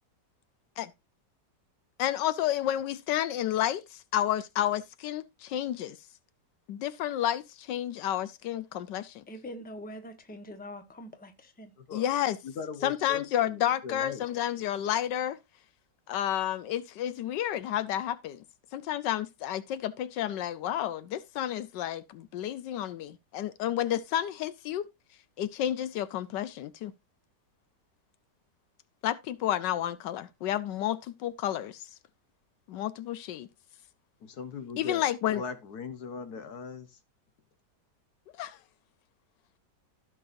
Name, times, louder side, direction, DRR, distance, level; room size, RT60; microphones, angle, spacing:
voice 1, 2.0-6.0 6.7-9.2 11.9-12.4 12.8-15.4 16.1-18.4 18.7-24.9 25.4-26.9 29.0-31.8 32.7-33.5 34.8-35.4 38.4-38.6, left 11 dB, 85° left, 1.3 m, -31 dB
voice 2, 9.3-11.7, equal, 5° left, 1.0 m, -44 dB
voice 3, 12.4-14.2 34.2-35.1 35.3-37.0, left 5 dB, 65° left, 1.5 m, -40 dB
15.0 x 6.2 x 2.6 m
omnidirectional pair, 1.9 m